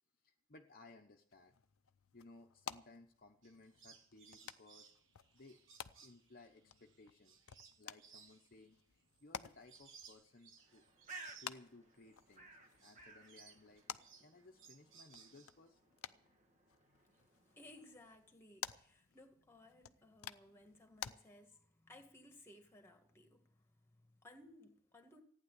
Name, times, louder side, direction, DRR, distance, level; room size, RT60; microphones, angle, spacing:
voice 1, 0.2-1.6 2.1-4.9 5.3-5.6 6.0-7.4 7.7-10.8 11.4-13.8 14.2-15.8, left 2 dB, 40° left, 0.9 m, -61 dB
sound 1, 1.3-21.1, left 8 dB, 75° left, 0.6 m, -54 dB
sound 2, 3.4-12.4 12.7-15.7, right 6 dB, 60° right, 1.4 m, -63 dB
Bird, 10.6-18.2, right 3 dB, 35° right, 1.4 m, -58 dB
voice 2, 17.0-25.2, left 1 dB, 10° left, 1.9 m, -61 dB
15.0 x 9.7 x 8.3 m
head